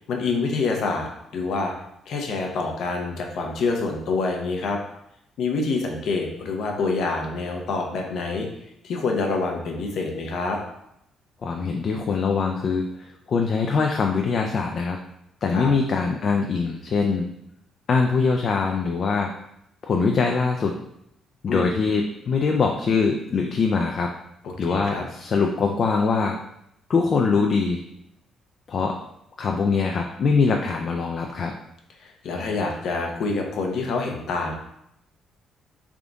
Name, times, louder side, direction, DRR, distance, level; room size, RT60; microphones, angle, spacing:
voice 1, 0.0-1.7 2.1-4.8 5.4-8.5 8.8-10.6 15.5-15.7 21.5-21.7 24.4-25.0 32.0-34.5, left 3 dB, 65° left, 2 dB, 0.7 m, -26 dB
voice 2, 11.4-15.0 15.4-17.3 17.9-19.3 19.8-20.8 21.4-24.2 24.6-26.4 26.9-27.8 28.7-29.0 29.4-31.5, left 4 dB, 45° left, 2 dB, 0.3 m, -23 dB
3.5 x 2.4 x 3.8 m, 0.78 s
cardioid pair, 135°, 0 cm